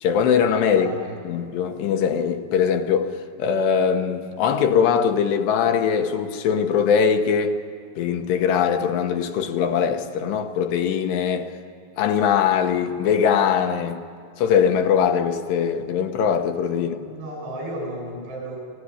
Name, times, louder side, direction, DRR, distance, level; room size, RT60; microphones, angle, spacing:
voice 1, 0.0-0.9 1.3-7.6 8.0-11.5 12.0-14.0 14.4-17.0, left 7 dB, 80° left, 3.2 m, -21 dB
voice 2, 0.7-1.2 16.8-18.6, right 1 dB, 75° right, 10.0 m, -34 dB
26.5 x 16.5 x 9.9 m
omnidirectional pair, 4.9 m